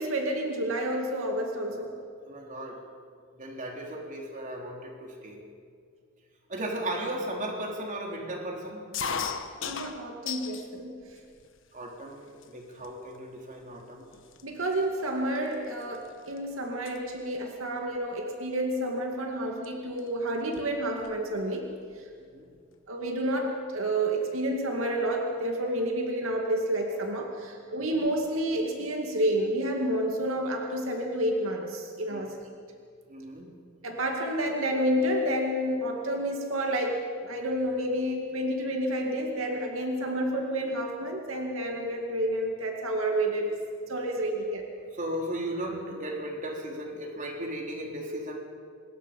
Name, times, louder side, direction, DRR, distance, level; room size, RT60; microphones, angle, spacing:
voice 1, 0.0-1.9 9.6-11.0 14.4-21.7 22.0-22.1 22.9-32.4 33.8-44.7, right 1 dB, 85° right, 2 dB, 2.3 m, -29 dB
voice 2, 2.3-2.8 3.3-5.4 6.5-8.9 11.7-14.1 22.2-22.5 27.7-27.8 32.1-32.2 33.1-33.5 44.9-48.4, right 1 dB, 40° right, 0 dB, 3.6 m, -36 dB
sound 1, 8.9-10.7 11.1-11.8 12.4-12.5 12.8-13.2 13.8-13.9 14.1-16.4 16.7-17.0 18.3-18.5 19.6-19.7 20.0-20.1 20.4-21.2, left 6 dB, 65° left, 1.2 m, -36 dB
25.5 x 21.0 x 5.4 m, 2.1 s
head